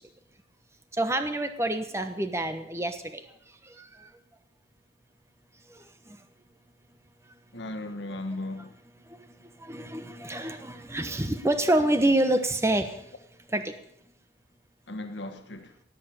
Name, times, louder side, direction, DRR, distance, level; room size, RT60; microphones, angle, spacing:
voice 1, 0.9-3.2 3.6-4.1 5.7-6.2 8.1-8.2 9.1-13.1 13.5-13.7, right 1 dB, 15° right, 1.1 m, -28 dB
voice 2, 7.5-8.7 14.9-15.7, left 2 dB, 75° left, 1.6 m, -36 dB
18.0 x 7.7 x 8.8 m
head